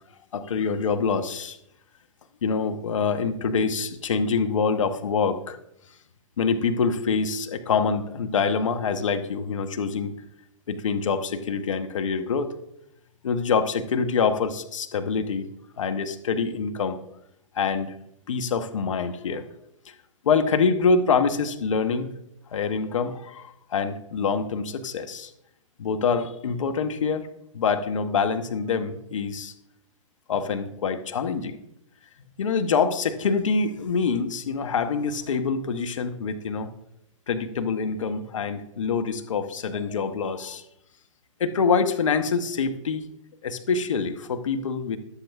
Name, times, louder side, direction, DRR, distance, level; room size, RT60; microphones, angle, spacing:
voice 1, 0.3-1.6 2.4-5.6 6.4-10.1 10.7-12.5 13.2-15.5 15.8-17.0 17.5-17.9 18.3-19.4 20.2-22.1 22.5-25.3 25.8-27.3 27.5-29.5 30.3-31.6 32.4-36.7 37.3-40.6 41.4-43.0 43.4-45.0, left 5 dB, 70° left, 8 dB, 1.1 m, -25 dB
14.0 x 12.0 x 2.4 m, 0.77 s
hypercardioid pair, 120°, 17 cm